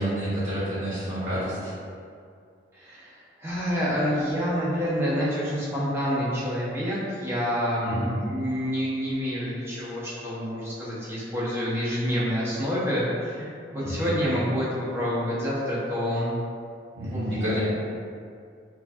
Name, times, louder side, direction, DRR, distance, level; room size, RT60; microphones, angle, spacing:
voice 1, 0.0-1.7 7.8-8.1 13.8-14.2 17.0-17.6, equal, 90° right, -12 dB, 1.4 m, -29 dB
voice 2, 2.7-13.5 13.7-16.3 17.1-17.6, equal, 15° right, -8 dB, 0.8 m, -28 dB
4.5 x 2.7 x 2.3 m, 2.3 s
head